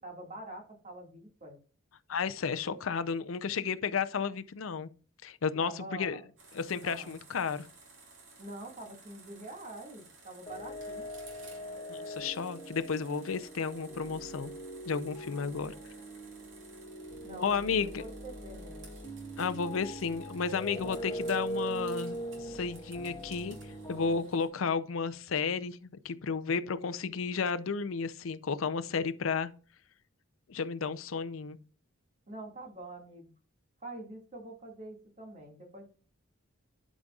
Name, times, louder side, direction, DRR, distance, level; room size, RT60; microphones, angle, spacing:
voice 1, 0.0-1.6 5.6-6.3 6.8-7.1 8.4-11.1 17.2-18.9 32.3-33.3 33.8-35.9, right 2 dB, 40° right, 2.0 m, -45 dB
voice 2, 2.1-4.9 5.2-6.2 6.5-7.7 11.9-14.5 14.9-15.7 17.4-18.0 19.4-23.6 23.9-25.8 26.0-29.5 30.5-31.6, left 5 dB, 85° left, 0.6 m, -32 dB
sound 1, 6.4-24.5, right 4 dB, 70° right, 2.6 m, -56 dB
sound 2, 10.5-24.2, right 1 dB, 25° left, 1.8 m, -41 dB
12.0 x 5.1 x 2.4 m
head